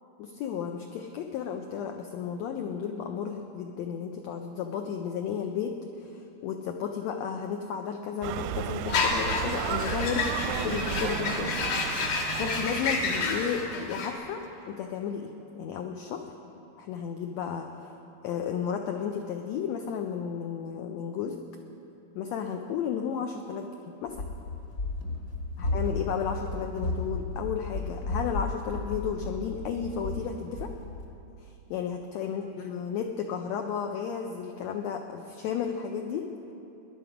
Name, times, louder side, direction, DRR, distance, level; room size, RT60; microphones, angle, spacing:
voice 1, 0.2-11.5 12.4-16.3 16.8-17.7 18.2-21.4 22.1-23.7 24.0-24.2 25.6-30.7 31.4-36.3, left 7 dB, 90° left, 4 dB, 1.5 m, -33 dB
sound 1, 8.2-14.3, right 9 dB, 85° right, 2.3 m, -34 dB
sound 2, 8.9-14.1, left 4 dB, 65° left, 2.8 m, -30 dB
Run, 24.1-31.1, left 2 dB, 50° left, 1.5 m, -34 dB
19.0 x 10.5 x 5.0 m, 2.8 s
omnidirectional pair, 3.9 m